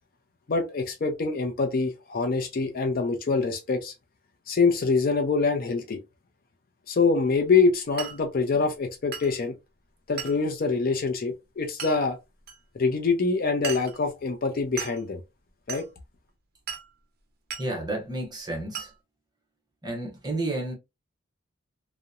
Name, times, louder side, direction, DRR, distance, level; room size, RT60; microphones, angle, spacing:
voice 1, 0.5-3.9 4.5-6.0 6.9-9.5 10.1-12.2 12.7-15.2 15.7-15.8, left 4 dB, 45° left, 0.4 m, -25 dB
Glass, 8.0-8.2 9.1-9.3 10.2-10.4 11.8-12.0 12.5-12.6 13.6-14.0 14.8-15.0 15.7-15.9 16.7-16.9 17.5-17.7 18.7-18.9, right 7 dB, 50° right, 0.5 m, -36 dB
voice 2, 17.6-18.9 19.8-20.7, right 2 dB, 20° right, 0.8 m, -31 dB
2.8 x 2.0 x 2.3 m
head